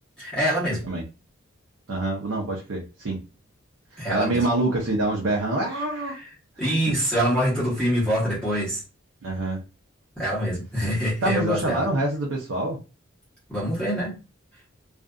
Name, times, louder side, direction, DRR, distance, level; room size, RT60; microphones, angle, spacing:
voice 1, 0.2-0.8 4.0-4.5 6.1-6.2 6.6-8.8 10.2-11.9 13.5-14.1, equal, 5° left, -7 dB, 1.0 m, -25 dB
voice 2, 1.9-3.2 3.9-6.1 9.2-9.6 11.2-12.8, right 2 dB, 70° right, -1 dB, 0.6 m, -26 dB
2.5 x 2.4 x 2.2 m, 0.31 s
head